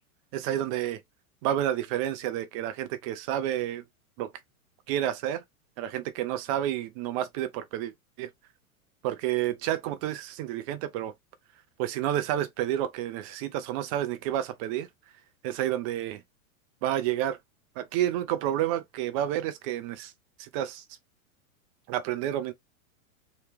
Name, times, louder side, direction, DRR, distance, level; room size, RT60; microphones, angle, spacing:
voice 1, 0.3-1.0 1.4-3.8 4.2-4.3 4.9-5.4 5.8-7.9 8.2-8.3 9.0-11.1 11.8-14.9 15.4-16.2 16.8-17.4 17.8-20.1 20.4-20.8 21.9-22.5, right 12 dB, 25° right, 0.3 m, -30 dB
3.2 x 3.0 x 3.2 m
hypercardioid pair, 130°, 43 cm